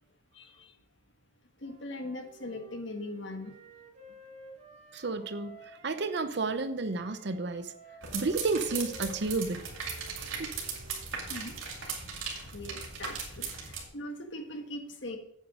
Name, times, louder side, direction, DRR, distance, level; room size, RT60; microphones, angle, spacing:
voice 1, 1.6-3.6 11.3-11.9 12.5-15.2, left 1 dB, 60° left, 1.6 m, -40 dB
Wind instrument woodwind instrument, 1.6-6.2 6.8-11.7, right 2 dB, 35° right, 1.4 m, -53 dB
voice 2, 4.9-7.7 8.1-9.6 10.2-10.5, right 3 dB, 55° right, 0.7 m, -32 dB
sound 1, 8.0-13.9, right 5 dB, 80° right, 2.5 m, -38 dB
8.9 x 8.1 x 5.0 m
head